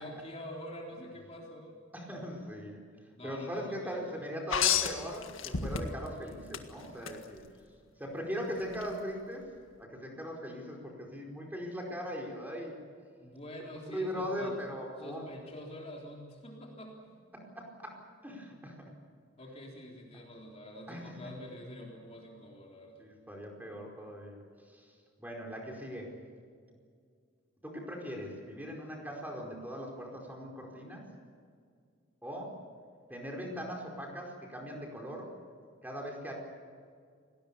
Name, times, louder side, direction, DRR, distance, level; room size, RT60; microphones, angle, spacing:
voice 1, 0.0-1.8 3.1-4.2 13.2-14.6 15.0-17.0 19.4-23.1, equal, 30° left, -1 dB, 3.8 m, -46 dB
voice 2, 1.9-2.8 3.2-7.4 8.0-9.5 9.8-12.8 13.9-15.3 17.5-17.9 18.2-18.8 20.9-21.3 23.0-24.4 24.7-24.9 25.2-26.1 27.6-31.1 32.2-32.6 33.1-35.3 35.8-36.3, equal, 10° right, 0 dB, 4.8 m, -40 dB
sound 1, 4.5-6.1 6.5-7.2 8.7-8.8, left 8 dB, 75° left, 1.8 m, -30 dB
29.0 x 19.5 x 7.0 m, 2.1 s
head